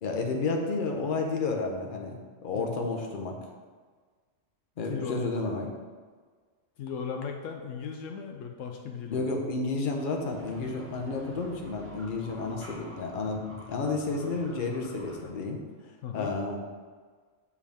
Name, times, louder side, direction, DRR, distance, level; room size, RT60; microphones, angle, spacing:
voice 1, 0.0-3.4 4.8-5.7 9.1-13.4 13.7-15.6 16.1-16.6, left 3 dB, 45° left, 2 dB, 0.8 m, -31 dB
voice 2, 4.9-5.2 6.8-9.2 16.0-16.4, left 6 dB, 75° left, 3 dB, 0.9 m, -37 dB
sound 1, 10.3-15.3, right 1 dB, 15° right, 0.7 m, -47 dB
7.0 x 4.7 x 3.4 m, 1.5 s
omnidirectional pair, 1.4 m